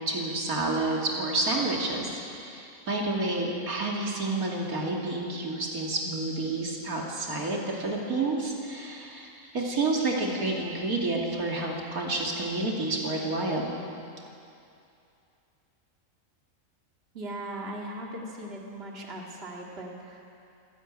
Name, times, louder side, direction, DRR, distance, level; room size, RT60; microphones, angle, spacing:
voice 1, 0.0-9.3 9.5-13.7, right 2 dB, 85° right, -2 dB, 3.1 m, -29 dB
voice 2, 17.1-20.3, right 1 dB, 45° right, -1 dB, 2.4 m, -39 dB
26.0 x 11.5 x 8.9 m, 2.6 s
omnidirectional pair, 1.5 m